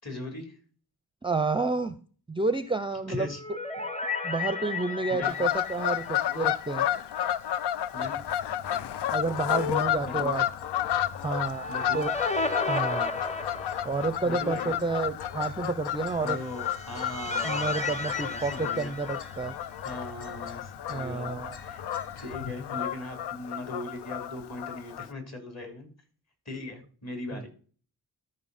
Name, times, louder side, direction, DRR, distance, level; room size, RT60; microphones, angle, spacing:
voice 1, 0.0-0.6 3.1-3.4 3.8-3.9 5.1-5.4 7.9-8.2 10.0-10.3 11.7-12.1 14.2-14.8 16.2-18.9 19.8-21.8 22.2-25.9 26.5-27.5, left 2 dB, 40° left, 4 dB, 3.5 m, -39 dB
voice 2, 1.2-1.9 2.3-3.3 4.2-6.9 9.1-10.4 11.2-11.7 11.9-12.1 12.7-13.1 13.8-16.4 17.4-19.6 20.9-21.6 27.3-27.5, right 3 dB, 15° right, 11 dB, 0.5 m, -30 dB
sound 1, 3.0-7.3 7.6-7.7 11.2-14.3 16.4-19.8, left 3 dB, 15° left, 1.0 m, -34 dB
Fowl / Bird vocalization bird call bird song, 5.2-25.1, left 11 dB, 90° left, 0.5 m, -32 dB
sound 2, 8.0-22.3, left 4 dB, 70° left, 1.1 m, -47 dB
13.5 x 5.4 x 4.2 m, 0.42 s
wide cardioid pair, 105°, 40 cm